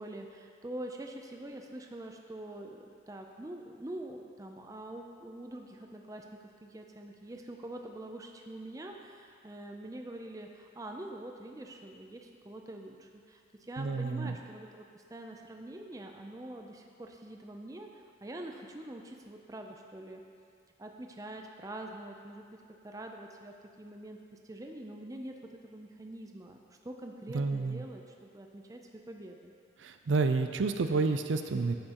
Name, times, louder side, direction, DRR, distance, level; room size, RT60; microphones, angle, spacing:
voice 1, 0.0-6.2 6.6-20.2 20.8-22.6 22.8-24.2 24.4-25.3 25.6-29.5, right 1 dB, 15° right, 2 dB, 0.5 m, -45 dB
voice 2, 13.8-14.4 27.3-27.8 29.8-31.7, right 4 dB, 75° right, 8 dB, 0.4 m, -30 dB
10.0 x 7.7 x 3.0 m, 2.4 s
head